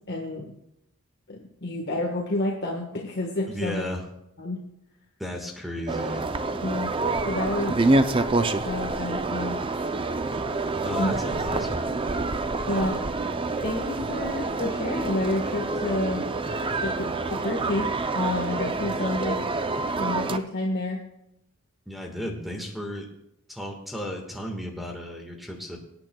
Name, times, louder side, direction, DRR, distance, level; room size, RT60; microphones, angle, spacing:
voice 1, 0.1-0.5 1.3-3.8 4.4-4.6 6.6-6.9 7.2-7.8 8.6-9.6 11.0-11.1 12.7-13.0 13.6-16.2 16.8-19.4 20.0-21.0, left 2 dB, 50° left, -1 dB, 1.4 m, -29 dB
voice 2, 3.5-4.0 5.2-6.2 10.7-11.8 12.6-12.9 21.9-23.1 23.5-25.8, left 1 dB, ahead, 1 dB, 1.5 m, -34 dB
sound 1, 5.9-20.4, right 3 dB, 25° right, 0.4 m, -27 dB
24.0 x 9.1 x 2.3 m, 0.81 s
head